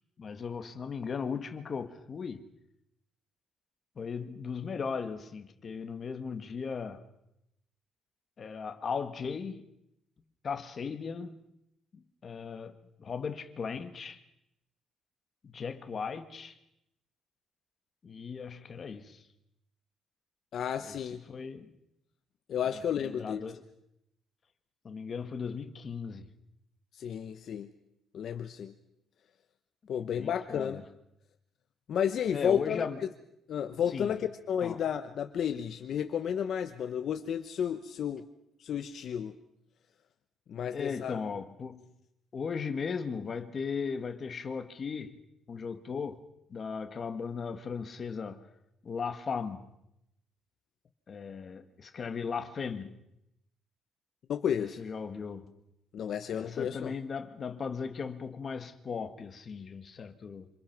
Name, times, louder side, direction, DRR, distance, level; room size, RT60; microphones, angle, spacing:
voice 1, 0.2-2.5 3.9-7.1 8.4-9.7 10.4-11.5 11.9-14.2 15.4-16.5 18.0-19.3 20.8-21.8 22.6-23.6 24.8-26.3 30.0-30.8 32.3-33.0 33.9-34.2 34.6-34.8 40.7-41.9 42.3-45.2 45.5-46.2 46.5-48.5 48.8-49.7 51.1-53.0 54.6-55.6 56.3-60.5, left 5 dB, 35° left, 1.7 m, -37 dB
voice 2, 20.5-21.2 22.5-23.4 26.9-27.7 28.1-28.7 29.9-30.8 31.9-32.9 33.5-38.2 38.6-39.4 40.5-41.2 54.3-54.8 55.9-56.9, left 8 dB, 50° left, 1.0 m, -32 dB
26.5 x 26.5 x 6.0 m
cardioid pair, 170°, 0 cm